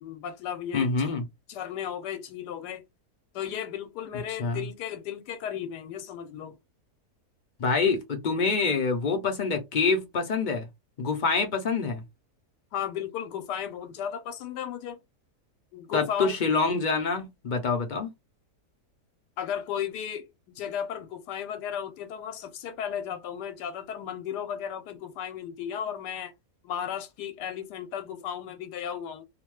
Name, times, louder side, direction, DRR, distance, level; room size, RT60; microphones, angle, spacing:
voice 1, 0.0-1.2 1.5-2.8 3.3-6.6 12.7-15.0 15.7-16.4 19.4-20.3 20.5-26.3 26.6-29.2, left 9 dB, 85° left, 1.2 m, -35 dB
voice 2, 0.7-1.2 4.4-4.6 7.6-10.7 11.0-12.0 15.9-18.1, left 4 dB, 50° left, 0.5 m, -26 dB
2.8 x 2.2 x 3.0 m
omnidirectional pair, 1.7 m